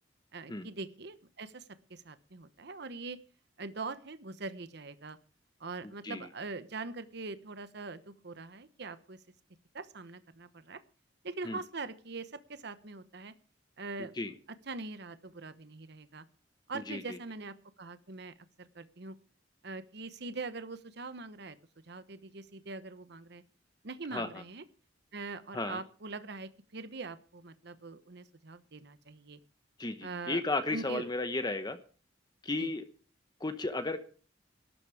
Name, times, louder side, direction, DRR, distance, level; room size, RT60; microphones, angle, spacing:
voice 1, 0.3-3.2 3.6-5.2 5.6-9.2 9.7-10.8 11.2-13.3 13.8-14.4 14.7-16.2 16.7-19.1 19.6-21.6 21.8-23.4 23.8-24.6 25.1-29.4 30.0-30.4 30.7-31.0 32.6-32.7, right 3 dB, 60° right, 1.0 m, -43 dB
voice 2, 16.9-17.2 24.1-24.3 25.5-25.8 29.8-31.8 32.4-32.8 33.4-34.0, left 2 dB, 20° left, 1.0 m, -34 dB
12.5 x 8.3 x 8.4 m
head